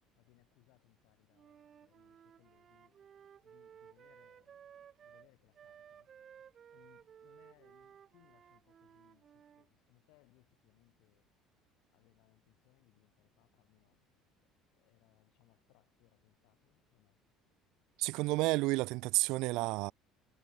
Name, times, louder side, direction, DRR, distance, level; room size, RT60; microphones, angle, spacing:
voice 1, 0.1-3.0 3.4-4.7 5.0-6.1 6.7-11.3 11.9-14.1 14.4-17.2, left 28 dB, 75° left, 7.4 m, -70 dB
Wind instrument woodwind instrument, 1.3-9.7, right 8 dB, 30° right, 0.9 m, -58 dB
voice 2, 18.0-19.9, right 22 dB, 65° right, 0.5 m, -31 dB
cardioid pair, 165°, 0 cm